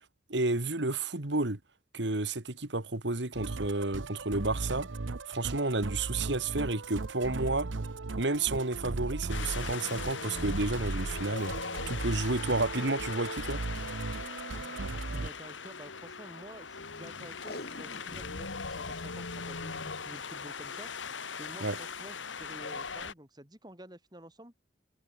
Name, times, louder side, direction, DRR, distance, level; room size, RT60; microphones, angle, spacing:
voice 1, 0.3-1.6 1.9-4.9 5.3-7.7 8.2-11.6 11.9-13.6 21.6-21.8, right 2 dB, 70° right, 2.1 m, -31 dB
Musical instrument, 3.3-15.3, right 3 dB, 90° right, 0.8 m, -37 dB
Wind, 9.3-23.1, left 5 dB, 90° left, 2.1 m, -40 dB
voice 2, 15.1-20.9 21.4-24.5, right 1 dB, 20° right, 3.3 m, -50 dB
Packing tape duct tape, 17.3-18.4 18.8-18.9 19.0-19.1 19.7-20.0 21.0-21.3 21.9-22.0, left 2 dB, 55° left, 2.1 m, -45 dB
head